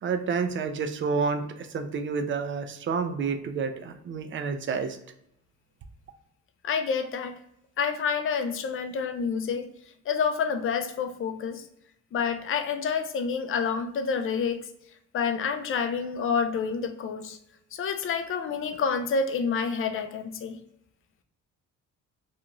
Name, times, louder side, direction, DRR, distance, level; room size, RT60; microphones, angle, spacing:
voice 1, 0.0-5.0, right 5 dB, 40° right, 9 dB, 0.4 m, -29 dB
voice 2, 6.6-7.3 7.8-9.7 10.1-11.6 12.1-14.6 15.1-17.4 17.7-20.6, left 6 dB, 45° left, 6 dB, 0.4 m, -28 dB
2.4 x 2.4 x 2.9 m, 0.78 s
cardioid pair, 90°, 30 cm